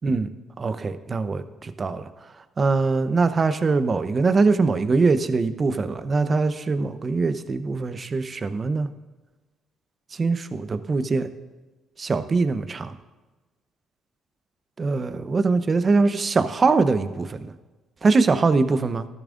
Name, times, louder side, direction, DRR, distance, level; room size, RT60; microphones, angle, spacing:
voice 1, 0.6-2.0 2.6-8.9 10.1-11.3 12.0-12.9 14.8-17.5 18.0-19.1, right 4 dB, 40° right, 11 dB, 0.8 m, -22 dB
13.5 x 12.0 x 2.6 m, 1.2 s
supercardioid pair, 60°, 0 cm